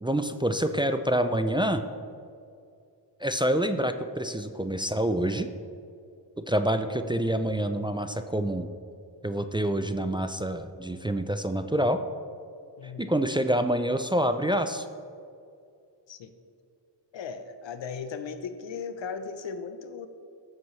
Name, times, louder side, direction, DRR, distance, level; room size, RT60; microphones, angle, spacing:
voice 1, 0.0-1.8 3.2-5.5 6.4-8.7 9.2-12.0 12.8-14.9, right 1 dB, 10° right, 8 dB, 0.4 m, -27 dB
voice 2, 12.8-13.1 16.1-16.3 17.1-20.1, left 5 dB, 80° left, 9 dB, 0.8 m, -37 dB
14.0 x 7.5 x 3.2 m, 2.4 s
cardioid pair, 80°, 44 cm